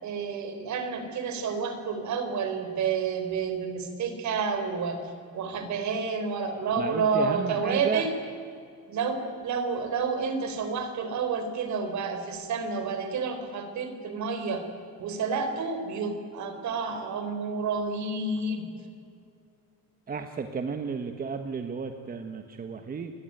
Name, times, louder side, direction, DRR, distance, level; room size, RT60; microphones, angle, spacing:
voice 1, 0.0-8.1 8.9-14.7 15.0-18.7, right 5 dB, 50° right, 8 dB, 4.4 m, -30 dB
voice 2, 6.8-8.0 20.1-23.1, right 5 dB, 25° right, 7 dB, 1.3 m, -33 dB
29.0 x 22.0 x 9.1 m, 2.4 s
cardioid pair, 160°, 35 cm